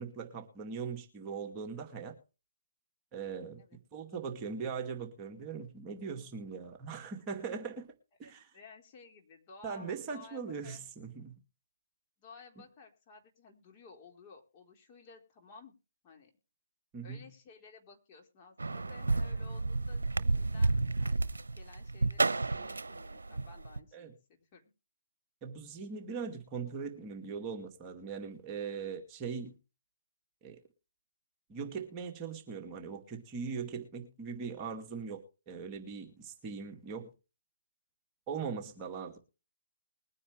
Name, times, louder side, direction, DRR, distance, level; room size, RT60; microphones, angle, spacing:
voice 1, 0.0-2.1 3.1-3.6 3.9-7.9 8.2-8.5 9.6-11.4 16.9-17.3 23.9-24.1 25.4-29.6 30.4-30.6 31.5-37.1 38.3-39.2, right 5 dB, 20° right, 2 dB, 2.3 m, -40 dB
voice 2, 8.2-10.8 12.2-15.7 16.0-16.3 17.0-24.7, left 4 dB, 30° left, 1 dB, 4.0 m, -55 dB
sound 1, 18.6-23.8, right 3 dB, 75° right, 0.9 m, -31 dB
21.5 x 9.7 x 3.3 m, 0.33 s
figure-of-eight pair, 135°, 0 cm